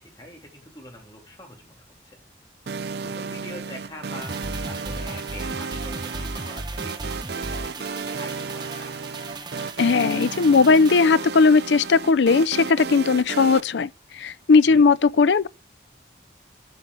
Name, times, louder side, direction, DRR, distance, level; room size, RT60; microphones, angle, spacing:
voice 1, 0.0-2.2 3.0-9.0 14.7-14.9, left 1 dB, 25° left, 3.1 m, -44 dB
sound 1, 2.7-13.6, right 5 dB, 65° right, 0.5 m, -34 dB
sound 2, 4.2-12.8 13.1-13.2, right 2 dB, 25° right, 0.9 m, -37 dB
voice 2, 9.8-15.5, left 4 dB, 75° left, 0.5 m, -18 dB
12.0 x 5.7 x 6.1 m
head